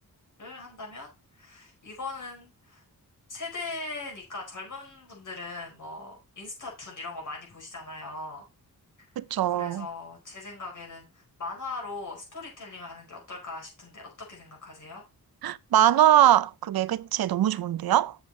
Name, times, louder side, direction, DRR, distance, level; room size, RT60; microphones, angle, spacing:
voice 1, 0.4-1.1 1.3-2.8 3.3-8.4 9.0-9.1 9.5-15.0, left 3 dB, 60° left, 4.8 m, -40 dB
voice 2, 9.2-9.9 15.4-18.2, right 11 dB, 90° right, 0.5 m, -22 dB
7.9 x 7.1 x 4.1 m
wide cardioid pair, 140°, 35 cm